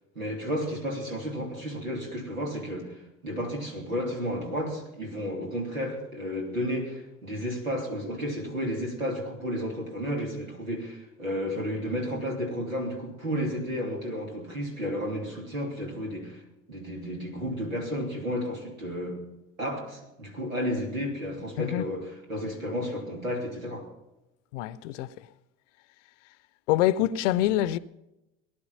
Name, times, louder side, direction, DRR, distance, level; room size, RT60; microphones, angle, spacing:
voice 1, 0.1-16.4 16.7-19.2 19.6-23.9, equal, 85° right, 3.1 m, -32 dB
voice 2, 24.5-25.1 26.7-27.8, left 13 dB, 65° left, 0.8 m, -25 dB
19.0 x 11.0 x 5.7 m
figure-of-eight pair, 60°, 39 cm